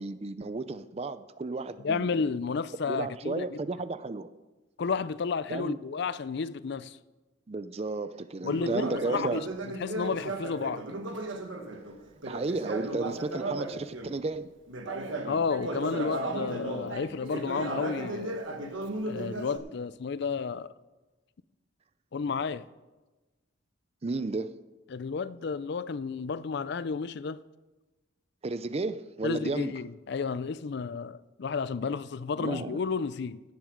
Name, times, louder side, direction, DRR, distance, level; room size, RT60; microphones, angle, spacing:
voice 1, 0.0-2.3 2.9-4.3 5.5-5.8 7.5-9.4 12.2-14.5 24.0-24.5 28.4-29.7 32.4-32.8, right 3 dB, 30° right, 0.4 m, -33 dB
voice 2, 1.8-3.6 4.8-7.0 8.4-9.5 9.8-10.8 15.2-18.4 19.1-20.7 22.1-22.7 24.9-27.4 29.2-33.4, left 5 dB, 55° left, 0.4 m, -32 dB
Conversation, 8.4-14.2 14.7-19.6, right 2 dB, 70° right, 1.3 m, -35 dB
16.5 x 9.2 x 5.1 m
head